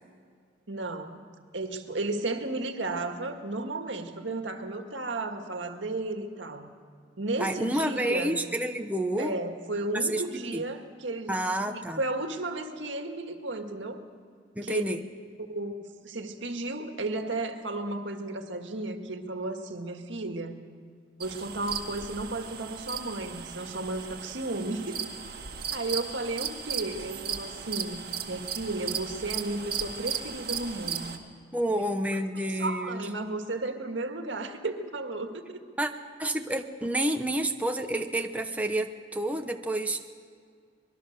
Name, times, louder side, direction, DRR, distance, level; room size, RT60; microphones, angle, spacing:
voice 1, 0.7-1.2 1.5-6.7 7.2-8.4 9.2-14.1 14.6-14.8 15.5-20.6 21.2-25.0 25.7-31.2 32.4-35.6, right 2 dB, 75° right, 5 dB, 1.9 m, -34 dB
voice 2, 7.4-9.3 9.9-10.2 10.5-10.6 11.3-12.0 14.5-15.0 31.5-33.1 35.8-35.9 36.2-40.2, right 1 dB, 10° right, 4 dB, 0.9 m, -29 dB
sound 1, 21.2-31.2, right 7 dB, 55° right, 1.9 m, -36 dB
25.0 x 21.0 x 6.6 m, 2.1 s
head